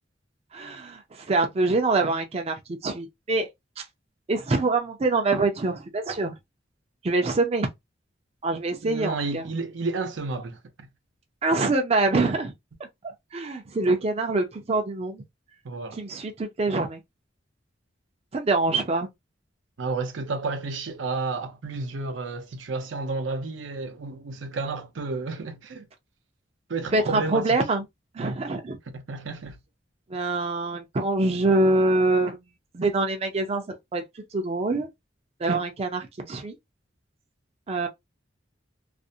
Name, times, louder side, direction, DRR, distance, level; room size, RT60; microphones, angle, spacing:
voice 1, 0.5-3.5 3.8-3.9 4.3-6.4 7.0-7.7 8.4-9.4 11.4-12.5 13.0-15.2 15.9-17.0 18.3-19.1 26.9-27.8 28.1-28.8 30.1-32.4 32.7-34.0 34.3-34.9 35.4-36.6 37.7-37.9, right 2 dB, 35° right, 0.5 m, -25 dB
voice 2, 8.8-10.9 15.6-16.0 19.8-25.8 26.7-27.6 28.2-28.4 28.9-29.6, right 3 dB, 80° right, 0.6 m, -31 dB
2.4 x 2.0 x 2.6 m
head